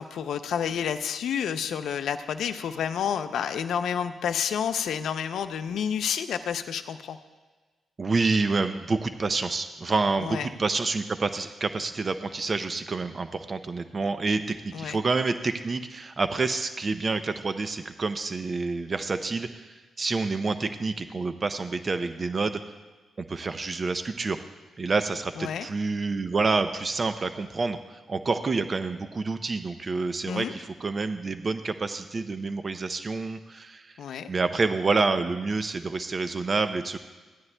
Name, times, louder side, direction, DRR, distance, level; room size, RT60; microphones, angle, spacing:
voice 1, 0.0-7.2 10.2-10.5 14.7-15.0 25.4-25.7 30.3-30.5 34.0-34.3, left 8 dB, 80° left, 11 dB, 0.5 m, -29 dB
voice 2, 8.0-22.6 23.2-24.4 24.8-34.0 34.3-37.0, right 3 dB, 35° right, 9 dB, 0.5 m, -28 dB
16.0 x 12.0 x 2.2 m, 1.3 s
cardioid pair, 95°, 0 cm